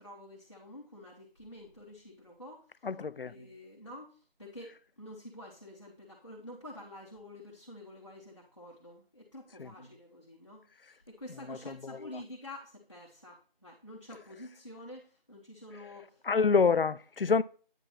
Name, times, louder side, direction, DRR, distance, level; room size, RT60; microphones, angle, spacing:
voice 1, 0.0-2.8 3.2-16.3, left 1 dB, 30° left, 1.0 m, -48 dB
voice 2, 2.8-3.3 9.6-9.7 11.5-12.1 16.2-17.4, left 5 dB, 70° left, 0.5 m, -27 dB
9.0 x 4.6 x 4.2 m
figure-of-eight pair, 175°, 29 cm